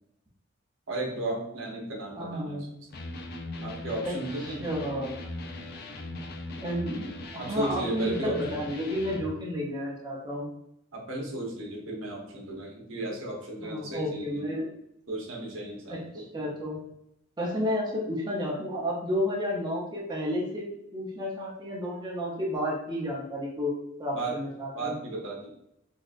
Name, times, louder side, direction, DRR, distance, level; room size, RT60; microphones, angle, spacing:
voice 1, 0.9-2.7 3.6-4.7 7.4-8.5 10.9-14.5 15.1-16.3 24.1-24.4 24.7-25.5, right 2 dB, 75° right, -2 dB, 0.9 m, -34 dB
voice 2, 2.2-2.7 4.0-4.1 4.6-5.2 6.6-10.5 13.6-14.7 15.9-16.8 17.4-20.6 20.9-23.7 24.0-24.9, equal, 20° right, -4 dB, 0.6 m, -31 dB
Electric guitar, 2.9-9.3, left 2 dB, 50° left, 0.4 m, -40 dB
4.0 x 2.3 x 2.5 m, 0.78 s
head